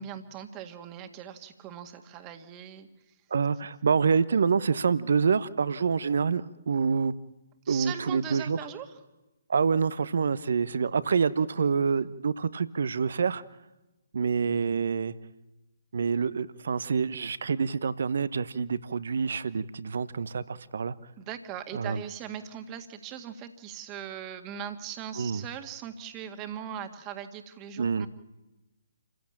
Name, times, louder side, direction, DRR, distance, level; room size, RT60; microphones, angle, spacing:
voice 1, 0.0-2.9 7.7-8.9 21.2-28.1, right 9 dB, 25° right, 8 dB, 1.9 m, -40 dB
voice 2, 3.3-7.1 7.7-8.6 9.5-13.4 14.1-15.1 15.9-20.9 21.7-22.0 25.2-25.4 27.8-28.1, right 5 dB, 60° right, 17 dB, 1.0 m, -27 dB
28.0 x 15.5 x 8.8 m, 1.1 s
figure-of-eight pair, 135°, 0 cm